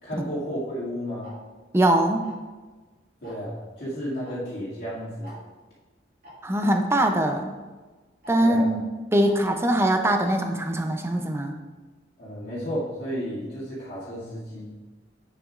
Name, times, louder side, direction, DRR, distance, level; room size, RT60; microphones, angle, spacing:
voice 1, 0.0-1.3 3.2-5.3 8.4-8.7 12.2-14.7, equal, 60° left, -11 dB, 2.4 m, -32 dB
Tick-tock, 1.2-1.3 2.2-2.5 3.2-3.5 4.2-4.3 4.6-4.7 5.2-5.4 6.2-6.3 7.2-7.3 8.2-8.3 9.2-9.4 10.2-10.3, left 1 dB, 55° right, 2.4 m, -45 dB
voice 2, 1.7-2.2 6.4-7.6 8.3-8.8 9.1-11.5, right 1 dB, 15° right, 5 dB, 0.6 m, -22 dB
9.0 x 6.8 x 2.5 m, 1.3 s
head